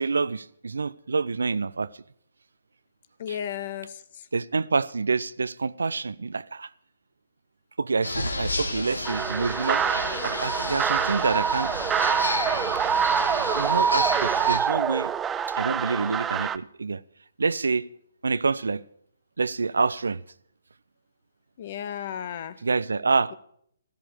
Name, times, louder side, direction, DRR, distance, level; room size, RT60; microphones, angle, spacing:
voice 1, 0.0-1.9 3.3-3.4 4.3-6.7 7.8-9.8 10.2-11.7 13.5-15.1 15.5-17.0 17.4-17.9 18.2-18.8 19.4-20.2 22.6-23.3, right 4 dB, 70° right, 0.5 m, -27 dB
voice 2, 3.2-4.0 21.6-22.6, left 9 dB, 45° left, 1.1 m, -33 dB
sound 1, 8.0-14.6, left 2 dB, 80° left, 1.9 m, -31 dB
sound 2, 9.0-16.6, right 8 dB, 10° right, 0.4 m, -25 dB
14.5 x 13.0 x 4.9 m
figure-of-eight pair, 135°, 0 cm